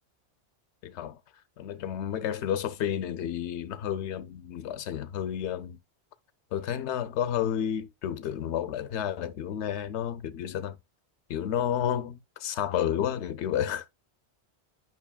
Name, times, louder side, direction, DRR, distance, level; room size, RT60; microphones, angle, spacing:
voice 1, 0.8-1.2 1.6-5.8 6.5-10.8 11.3-13.8, left 9 dB, 85° left, 0.9 m, -31 dB
9.4 x 5.3 x 2.2 m
omnidirectional pair, 1.1 m